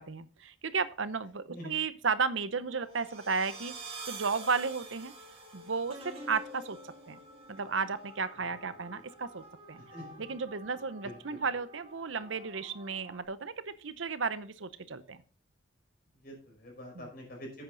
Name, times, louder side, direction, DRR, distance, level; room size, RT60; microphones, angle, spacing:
voice 1, 0.0-5.1 5.5-6.8 7.1-7.2 7.5-9.8 10.2-15.2 17.0-17.1, right 5 dB, 75° right, 14 dB, 0.8 m, -34 dB
sound 1, 2.7-13.2, right 2 dB, 30° right, 2.4 m, -48 dB
voice 2, 9.8-10.2 11.0-11.4 16.2-17.6, equal, 50° left, 1 dB, 5.3 m, -46 dB
10.5 x 8.7 x 3.9 m, 0.39 s
head